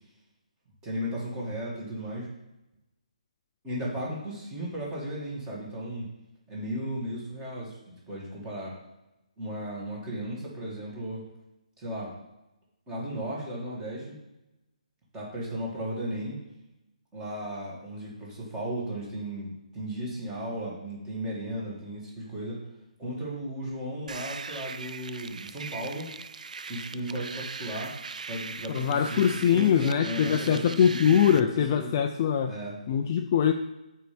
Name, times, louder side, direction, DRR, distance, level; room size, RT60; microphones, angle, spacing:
voice 1, 0.8-2.3 3.6-6.1 6.5-8.7 9.4-11.2 11.8-12.1 12.9-14.2 15.1-16.4 17.1-22.6 23.0-26.1 26.7-27.9 28.3-31.5 31.8-31.9 32.5-32.8, equal, 10° right, -4 dB, 1.9 m, -35 dB
sound 1, 24.1-31.4, right 5 dB, 75° right, 0.4 m, -40 dB
voice 2, 28.7-32.5 32.9-33.5, left 8 dB, 25° left, 5 dB, 0.3 m, -23 dB
8.0 x 4.5 x 5.1 m, 0.96 s
hypercardioid pair, 170°, 4 cm